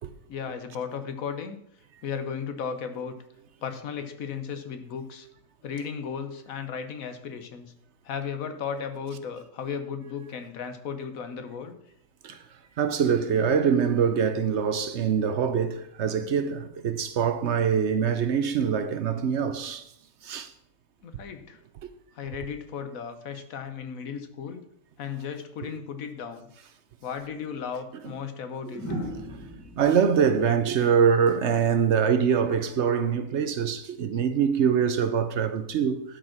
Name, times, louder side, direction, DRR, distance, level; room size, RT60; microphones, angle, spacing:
voice 1, 0.3-1.6 2.0-3.1 3.6-5.3 5.6-7.7 8.0-11.7 21.0-21.6 22.1-24.6 25.0-26.5 27.0-29.0 32.4-32.6, left 6 dB, 90° left, 1.4 m, -35 dB
voice 2, 12.8-19.8 20.2-20.5 29.8-36.0, right 7 dB, 60° right, 0.9 m, -24 dB
sound 1, 27.3-27.4 28.7-31.8 33.3-33.6, equal, 15° left, 1.6 m, -39 dB
11.5 x 5.2 x 5.9 m
omnidirectional pair, 1.4 m